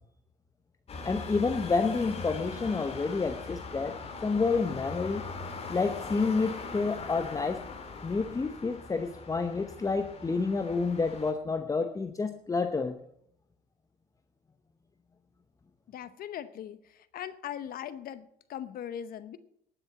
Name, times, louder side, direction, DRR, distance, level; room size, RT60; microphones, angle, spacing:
sound 1, 0.9-11.3, left 4 dB, 35° left, 2.4 m, -41 dB
voice 1, 1.0-5.2 5.7-7.6 8.0-13.0, left 4 dB, 20° left, 8 dB, 0.8 m, -29 dB
voice 2, 15.9-19.4, left 10 dB, 60° left, 14 dB, 0.8 m, -40 dB
11.5 x 7.0 x 8.3 m, 0.71 s
cardioid pair, 110°, 17 cm